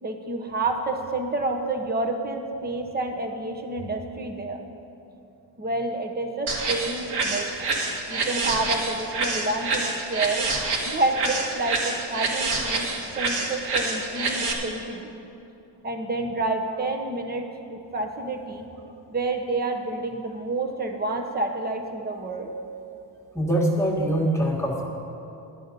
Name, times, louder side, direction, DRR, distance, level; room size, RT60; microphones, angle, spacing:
voice 1, 0.0-4.6 5.6-7.5 8.1-10.4 10.8-12.9 13.2-15.1 15.8-18.7 19.1-22.5, right 2 dB, 20° right, 3 dB, 1.0 m, -29 dB
sound 1, 6.5-14.5, right 3 dB, 60° right, 1.9 m, -27 dB
voice 2, 23.3-24.8, right 1 dB, 5° left, -2 dB, 1.5 m, -23 dB
12.0 x 9.9 x 5.2 m, 2.8 s
cardioid pair, 140°, 45 cm